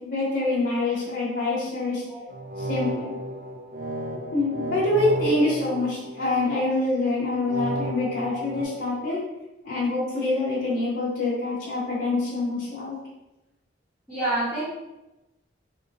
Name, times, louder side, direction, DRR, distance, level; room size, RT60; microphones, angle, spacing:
voice 1, 0.0-2.0 2.6-3.2 4.3-9.2 9.6-13.0, left 2 dB, 45° left, -8 dB, 1.0 m, -25 dB
sound 1, 2.3-6.6 7.5-8.7, right 1 dB, 45° right, 0.4 m, -33 dB
voice 2, 8.0-8.4 14.1-14.6, right 2 dB, 10° right, -12 dB, 1.1 m, -29 dB
3.7 x 2.2 x 2.9 m, 0.98 s
head